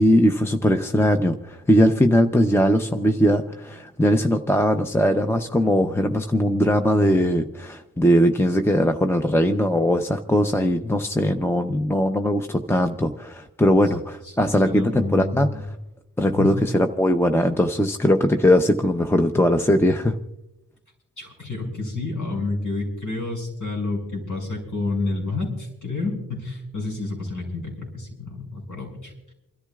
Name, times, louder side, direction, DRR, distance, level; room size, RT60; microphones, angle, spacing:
voice 1, 0.0-15.5 16.2-20.2, equal, 5° left, 6 dB, 0.6 m, -20 dB
voice 2, 14.2-15.6 16.3-16.5 21.2-29.3, left 3 dB, 65° left, 0 dB, 6.2 m, -29 dB
28.5 x 13.0 x 2.4 m, 0.90 s
wide cardioid pair, 85°, 33 cm